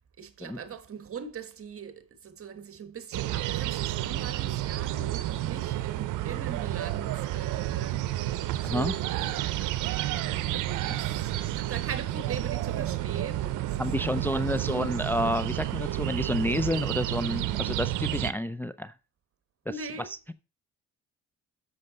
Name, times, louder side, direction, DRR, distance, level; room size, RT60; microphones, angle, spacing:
voice 1, 0.2-14.5 19.7-20.3, right 6 dB, 45° right, 1.4 m, -41 dB
sound 1, 3.1-18.3, right 14 dB, 90° right, 0.7 m, -30 dB
voice 2, 8.6-8.9 13.8-18.9, left 1 dB, 5° left, 0.4 m, -29 dB
7.7 x 6.6 x 3.9 m
cardioid pair, 90°, 30 cm